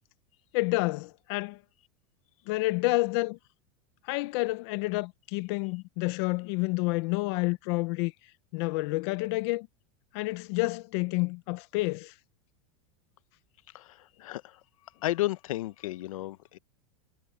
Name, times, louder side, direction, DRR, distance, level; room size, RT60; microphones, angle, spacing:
voice 1, 0.5-1.6 2.5-3.4 4.0-8.1 8.5-9.7 10.1-12.1, left 22 dB, 50° left, 0.9 m, -29 dB
voice 2, 13.7-14.6 15.0-16.6, left 16 dB, 80° left, 1.0 m, -33 dB
supercardioid pair, 155°, 17 cm